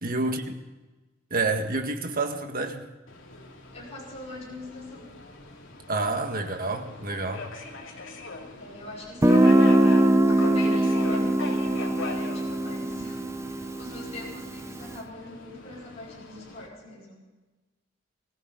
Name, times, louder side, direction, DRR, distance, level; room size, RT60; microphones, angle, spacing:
voice 1, 0.0-0.5 1.3-2.9 5.9-7.5, right 3 dB, 50° right, 1.8 m, -28 dB
Subway metro underground, 3.1-16.7, left 3 dB, 80° left, 2.9 m, -41 dB
voice 2, 3.7-5.2 8.5-9.8 10.3-17.2, left 2 dB, 35° left, 5.3 m, -42 dB
Guitar, 9.2-14.8, right 1 dB, 15° right, 0.6 m, -22 dB
23.5 x 15.5 x 4.0 m
head